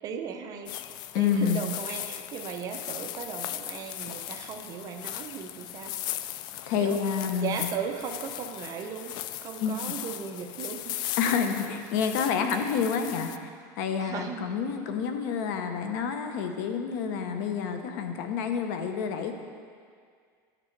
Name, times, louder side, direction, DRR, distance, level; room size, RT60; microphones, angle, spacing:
voice 1, 0.0-6.0 6.7-11.0 14.0-14.5, right 7 dB, 35° right, 5 dB, 0.7 m, -37 dB
sound 1, 0.7-13.4, left 12 dB, 45° left, 0.3 m, -38 dB
voice 2, 1.1-1.6 6.7-7.6 9.6-9.8 11.2-13.5 13.8-19.3, left 7 dB, 75° left, 6 dB, 0.8 m, -28 dB
11.0 x 6.0 x 4.6 m, 2.1 s
cardioid pair, 150°, 10 cm